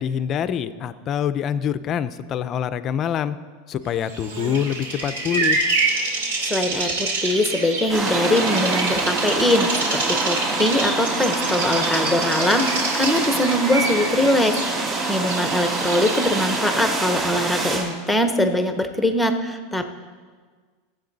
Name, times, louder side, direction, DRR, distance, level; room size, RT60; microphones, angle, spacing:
voice 1, 0.0-3.4 3.7-5.6, left 8 dB, 25° left, 13 dB, 0.4 m, -25 dB
Bird vocalization bird call bird song, 4.1-16.8, right 3 dB, 85° right, 2.9 m, -27 dB
voice 2, 6.5-19.9, left 1 dB, ahead, 6 dB, 0.7 m, -22 dB
sound 1, 7.9-17.8, right 2 dB, 20° right, 2.9 m, -26 dB
22.5 x 7.9 x 4.0 m, 1.5 s
supercardioid pair, 165°, 0 cm